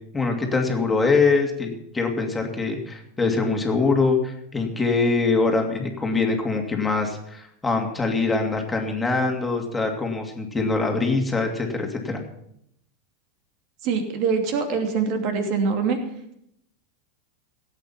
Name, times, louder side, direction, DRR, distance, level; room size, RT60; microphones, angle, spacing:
voice 1, 0.1-12.2, left 3 dB, 10° left, 2 dB, 2.6 m, -23 dB
voice 2, 13.8-16.0, right 5 dB, 50° right, 4 dB, 2.7 m, -24 dB
16.5 x 8.5 x 5.7 m, 0.75 s
figure-of-eight pair, 90°, 0 cm